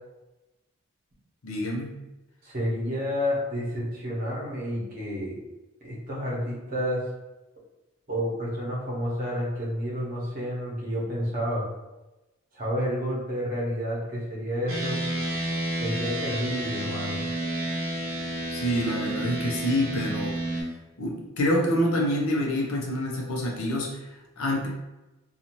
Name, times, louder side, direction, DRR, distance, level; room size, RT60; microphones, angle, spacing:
voice 1, 1.4-1.9 18.5-20.7 21.0-24.0 24.4-24.7, left 1 dB, 75° left, -1 dB, 0.7 m, -27 dB
voice 2, 2.4-5.4 5.8-7.0 8.1-11.7 12.5-15.0 15.8-17.2, equal, 40° right, -6 dB, 0.9 m, -30 dB
sound 1, 14.7-20.6, right 1 dB, 75° right, 0.8 m, -30 dB
2.6 x 2.4 x 2.9 m, 1.0 s
head